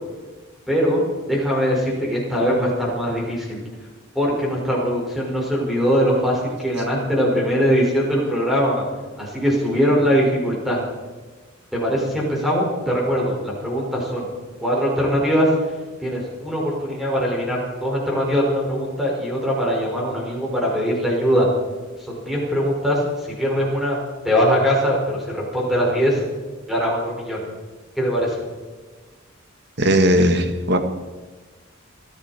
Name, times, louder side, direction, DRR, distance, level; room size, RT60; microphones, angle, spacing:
voice 1, 0.7-1.0 1.3-3.6 4.2-8.8 9.2-10.8 11.7-14.3 14.6-15.5 16.0-21.5 22.1-24.0 24.2-26.3 26.7-27.4 28.0-28.4, equal, ahead, -4 dB, 5.2 m, -21 dB
voice 2, 29.8-30.8, equal, 55° right, 7 dB, 1.7 m, -17 dB
29.5 x 10.5 x 4.4 m, 1.3 s
head